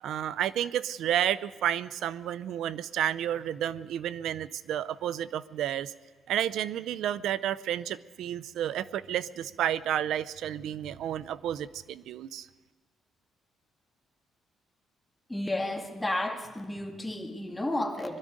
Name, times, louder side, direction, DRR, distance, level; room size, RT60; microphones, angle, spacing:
voice 1, 0.0-5.9 6.3-12.5, right 11 dB, 80° right, 17 dB, 0.5 m, -31 dB
voice 2, 15.3-18.2, left 1 dB, 10° left, 3 dB, 2.0 m, -32 dB
22.0 x 12.5 x 5.1 m, 1.3 s
cardioid pair, 90°, 0 cm